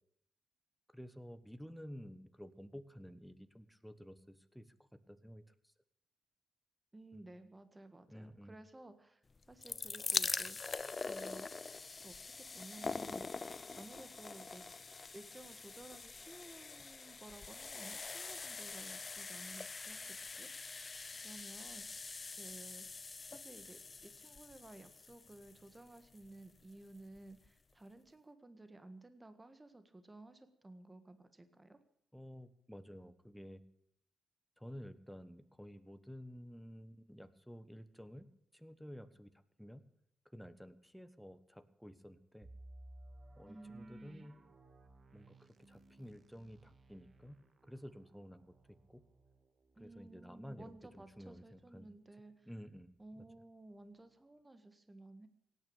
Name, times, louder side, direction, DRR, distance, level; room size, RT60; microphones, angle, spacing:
voice 1, 0.9-4.7 5.1-5.7 7.1-7.3 8.1-8.6 32.1-33.6 34.6-38.3 38.5-39.3 39.6-39.8 40.3-42.5 43.4-44.4 45.1-47.4 47.7-49.0 49.8-51.9 52.4-53.3, equal, ahead, 11 dB, 1.3 m, -52 dB
voice 2, 6.9-9.2 9.5-11.7 12.0-13.3 13.7-14.7 15.1-20.9 21.2-21.9 22.3-22.9 23.3-31.8 43.4-44.3 49.7-52.5 53.0-55.3, right 2 dB, 20° right, 10 dB, 1.6 m, -55 dB
sound 1, 9.4-26.4 27.2-27.3 27.5-27.6, left 4 dB, 35° left, 0.5 m, -44 dB
sound 2, 42.4-52.1 52.5-52.6 53.1-53.3, right 1 dB, 45° right, 1.9 m, -60 dB
17.0 x 9.5 x 8.8 m, 0.72 s
cardioid pair, 70°, 0 cm